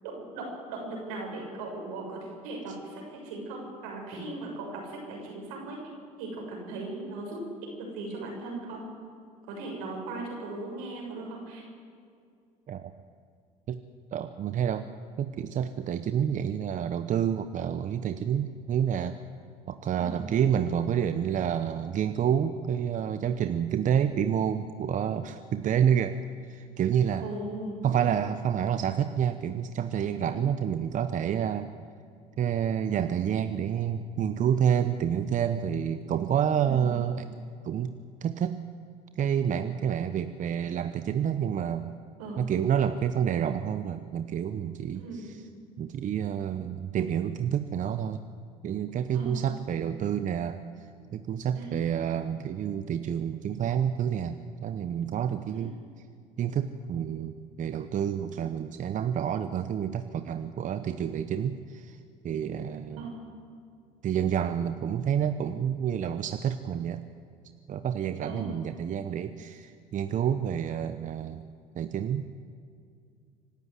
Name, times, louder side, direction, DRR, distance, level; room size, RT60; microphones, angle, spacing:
voice 1, 0.0-5.8 6.2-7.4 7.8-8.8 9.5-11.6 19.9-20.2 27.2-27.8 30.3-30.5 36.6-36.9 42.2-42.5 44.9-45.3 49.1-49.4 51.5-51.8 55.5-55.7 63.0-63.2 68.2-68.6, right 2 dB, 85° right, 0 dB, 6.7 m, -38 dB
voice 2, 14.1-14.9 15.2-19.2 19.7-26.2 26.5-27.3 27.8-31.7 32.4-37.2 37.6-37.9 38.2-38.6 39.2-41.9 42.4-45.4 45.8-48.2 48.6-50.6 51.1-54.3 54.6-55.8 56.4-62.0 62.2-63.1 64.0-67.0 67.7-71.4 71.7-72.3, right 8 dB, 50° right, 10 dB, 1.0 m, -28 dB
25.0 x 12.5 x 9.5 m, 2.3 s
supercardioid pair, 80°, 17 cm